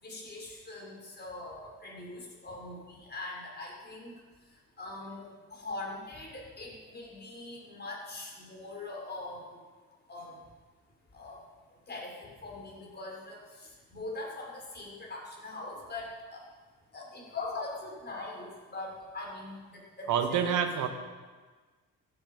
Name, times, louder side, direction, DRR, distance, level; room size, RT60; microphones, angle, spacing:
voice 1, 0.0-4.1 4.8-9.4 10.1-10.4 11.1-11.4 11.9-16.4 16.9-20.6, left 2 dB, 35° left, -2 dB, 5.0 m, -42 dB
voice 2, 20.1-20.9, right 8 dB, 80° right, 7 dB, 1.4 m, -27 dB
15.5 x 10.0 x 5.2 m, 1.4 s
cardioid pair, 90°, 30 cm